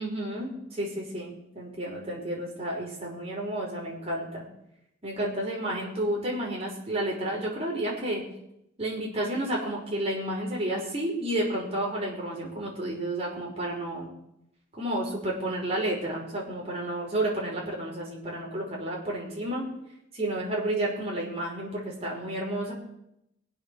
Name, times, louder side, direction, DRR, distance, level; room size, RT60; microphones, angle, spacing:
voice 1, 0.0-4.4 5.0-8.2 8.8-14.1 14.7-19.7 20.1-22.7, right 1 dB, 30° right, -3 dB, 5.5 m, -31 dB
22.5 x 8.0 x 7.0 m, 0.80 s
head